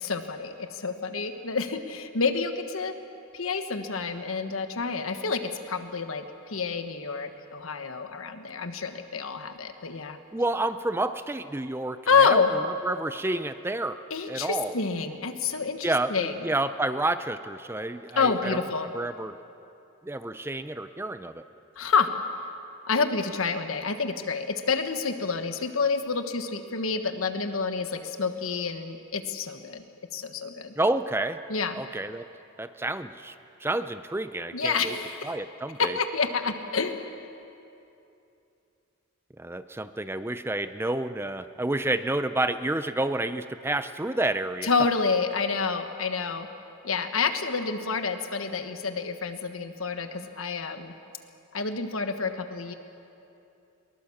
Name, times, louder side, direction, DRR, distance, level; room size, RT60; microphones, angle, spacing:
voice 1, 0.0-3.0 3.3-10.2 12.1-12.5 14.1-16.3 18.2-18.9 21.8-22.1 22.9-29.8 30.1-30.7 31.5-31.8 34.5-35.3 35.8-37.2 44.6-46.5 46.8-50.9 51.5-52.7, left 5 dB, 85° left, 7 dB, 1.4 m, -28 dB
voice 2, 10.3-12.4 12.8-14.0 14.3-14.7 15.8-18.6 18.9-19.4 20.0-21.4 30.8-31.4 31.7-32.3 32.6-33.3 33.6-35.0 35.2-36.0 39.4-44.7, right 2 dB, 10° right, 11 dB, 0.5 m, -29 dB
22.0 x 20.5 x 7.2 m, 2.7 s
head